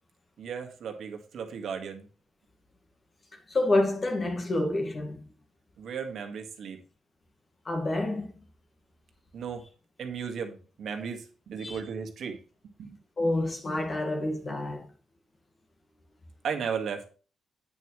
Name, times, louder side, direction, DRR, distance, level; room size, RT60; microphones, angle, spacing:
voice 1, 0.4-2.1 5.8-6.8 9.3-9.6 10.0-12.4 12.6-13.0 16.4-17.0, right 6 dB, 60° right, 1.8 m, -35 dB
voice 2, 3.5-5.3 7.7-8.3 11.6-11.8 13.2-14.9, left 2 dB, 30° left, 1.9 m, -28 dB
9.7 x 9.1 x 3.2 m
cardioid pair, 150°, 0 cm